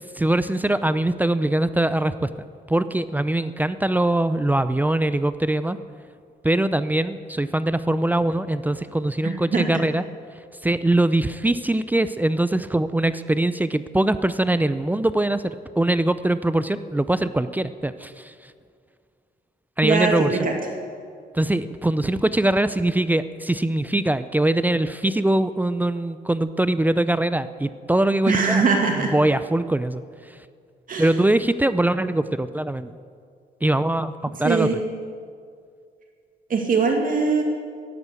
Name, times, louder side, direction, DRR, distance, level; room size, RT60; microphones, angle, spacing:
voice 1, 0.2-2.3 2.7-5.8 6.4-10.0 10.6-18.3 19.8-20.4 21.3-28.6 29.0-30.4 31.0-32.9 33.6-34.8, right 1 dB, 10° right, 13 dB, 0.5 m, -22 dB
voice 2, 9.2-9.6 19.8-20.5 28.3-29.1 30.9-31.1 34.4-34.8 36.5-37.4, right 4 dB, 50° right, 2 dB, 2.3 m, -21 dB
15.0 x 11.0 x 8.3 m, 2.2 s
cardioid pair, 120°, 18 cm